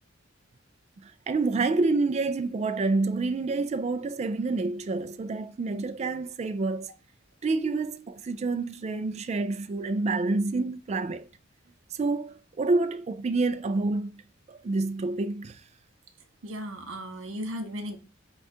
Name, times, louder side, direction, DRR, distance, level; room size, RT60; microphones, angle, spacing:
voice 1, 1.0-6.9 7.4-11.3 12.0-14.2 14.5-15.6, right 3 dB, 35° right, 0.3 m, -28 dB
voice 2, 16.4-18.0, equal, 75° right, 0.7 m, -36 dB
4.8 x 2.3 x 4.2 m
head